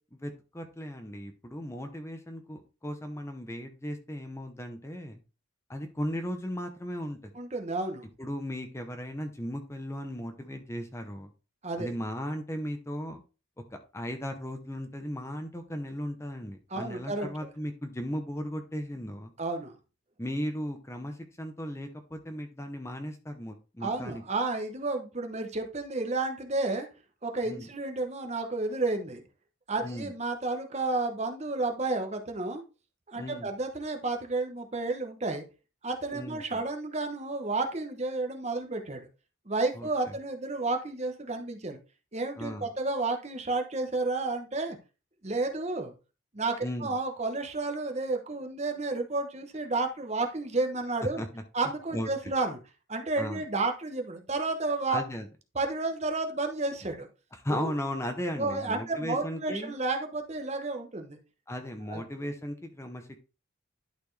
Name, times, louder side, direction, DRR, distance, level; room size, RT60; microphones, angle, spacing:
voice 1, 0.1-5.2 5.7-7.2 8.2-11.3 11.8-13.2 13.9-19.3 20.2-24.2 27.4-27.7 29.8-30.1 33.2-33.5 36.1-36.6 39.7-39.9 42.4-42.7 46.6-46.9 51.2-51.4 51.9-52.1 53.2-53.4 54.9-55.3 57.3-59.7 61.5-63.2, equal, 15° left, 6 dB, 0.8 m, -36 dB
voice 2, 7.3-8.1 11.6-11.9 16.7-17.3 19.4-19.7 23.8-26.9 27.2-29.2 29.7-32.6 33.1-35.4 35.8-39.1 39.5-41.8 42.1-44.8 45.2-45.9 46.3-51.2 51.5-52.6 52.9-55.0 55.5-57.1 57.5-57.7 58.4-61.2 61.9-62.0, right 3 dB, 30° right, 5 dB, 1.0 m, -31 dB
11.5 x 4.3 x 3.3 m, 0.32 s
head